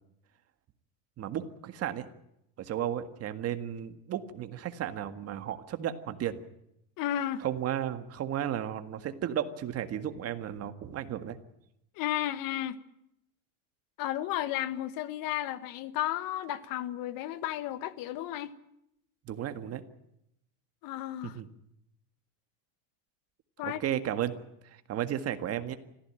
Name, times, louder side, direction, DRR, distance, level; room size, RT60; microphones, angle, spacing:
voice 1, 1.2-2.1 2.6-6.4 7.4-11.4 19.3-19.8 21.2-21.5 23.6-24.3 24.7-25.8, right 10 dB, 35° right, 1.8 m, -34 dB
voice 2, 7.0-7.4 12.0-12.8 14.0-18.6 20.8-21.4 23.6-23.8, left 12 dB, 55° left, 1.5 m, -33 dB
25.5 x 15.0 x 8.9 m
cardioid pair, 155°, 40 cm